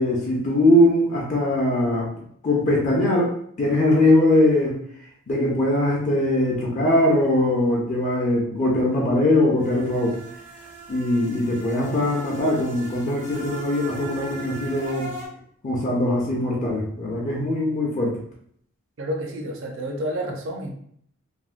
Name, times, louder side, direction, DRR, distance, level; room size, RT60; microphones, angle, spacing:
voice 1, 0.0-2.1 2.4-4.8 5.3-10.2 10.9-15.1 15.6-18.2, left 1 dB, 35° left, -4 dB, 0.5 m, -21 dB
sound 1, 9.6-15.3, right 3 dB, 85° right, 1.2 m, -39 dB
voice 2, 19.0-20.7, equal, 60° right, 2 dB, 0.5 m, -29 dB
3.3 x 2.1 x 2.4 m, 0.65 s
head